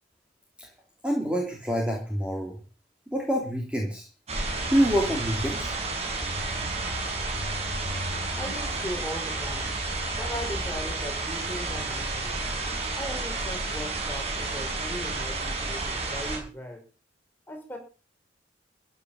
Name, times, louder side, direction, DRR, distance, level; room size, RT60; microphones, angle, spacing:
voice 1, 1.0-2.6 3.1-4.1 4.7-5.7, equal, 5° right, -1 dB, 3.4 m, -26 dB
sound 1, 4.3-16.4, right 2 dB, 35° right, 5.3 m, -31 dB
voice 2, 8.4-9.7 10.1-12.4 12.9-16.8 17.5-17.8, equal, 10° left, 3 dB, 5.0 m, -38 dB
15.0 x 8.2 x 7.3 m, 0.35 s
head